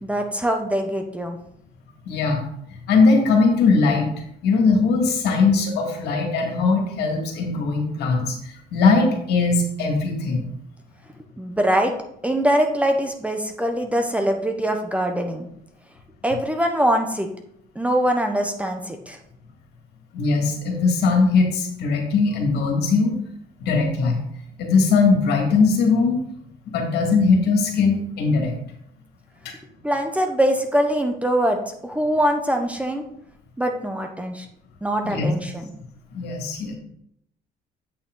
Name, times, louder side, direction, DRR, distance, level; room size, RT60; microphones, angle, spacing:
voice 1, 0.0-1.4 11.4-11.9 12.2-15.5 16.2-17.3 17.7-19.2 29.8-33.0 33.6-34.5 34.8-35.7, equal, 10° right, 4 dB, 0.9 m, -23 dB
voice 2, 2.0-2.4 2.9-4.1 4.4-10.4 20.1-23.2 23.6-24.2 24.6-26.2 26.7-28.5 29.4-29.5 35.0-35.3 36.1-36.8, left 4 dB, 75° left, 2 dB, 2.1 m, -20 dB
8.5 x 5.7 x 3.9 m, 0.72 s
cardioid pair, 110°, 17 cm